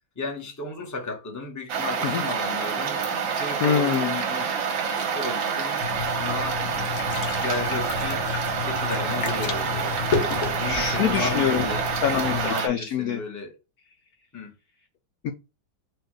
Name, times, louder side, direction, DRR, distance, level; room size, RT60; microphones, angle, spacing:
voice 1, 0.2-3.0 3.3-4.5 4.8-5.8 6.2-6.6 7.4-8.3 8.6-9.9 10.6-11.9 12.1-13.5 14.3-14.5, left 3 dB, 15° left, 0.8 m, -34 dB
sound 1, 1.7-12.7, right 6 dB, 90° right, 1.8 m, -27 dB
voice 2, 3.6-4.2 10.2-11.7 12.0-13.2 15.2-15.3, left 8 dB, 70° left, 0.9 m, -25 dB
sound 2, 5.8-12.5, left 6 dB, 55° left, 1.2 m, -31 dB
4.6 x 2.5 x 4.6 m
omnidirectional pair, 2.1 m